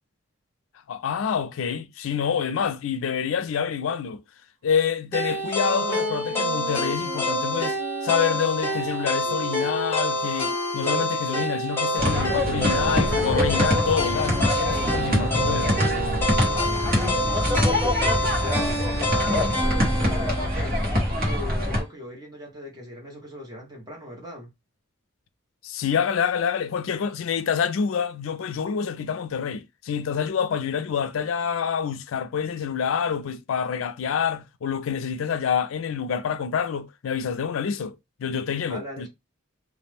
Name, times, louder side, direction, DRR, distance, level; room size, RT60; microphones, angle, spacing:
voice 1, 0.9-4.2 4.6-7.8 8.0-15.8 25.6-39.1, left 7 dB, 75° left, 0.4 m, -27 dB
sound 1, 5.1-21.2, left 1 dB, 10° left, 0.8 m, -28 dB
sound 2, 5.5-11.1 11.7-17.3, right 5 dB, 75° right, 0.4 m, -36 dB
sound 3, 12.0-21.8, left 1 dB, 45° right, 1.0 m, -24 dB
voice 2, 16.9-24.5 38.7-39.1, equal, 20° right, 0.9 m, -39 dB
2.4 x 2.1 x 3.2 m
head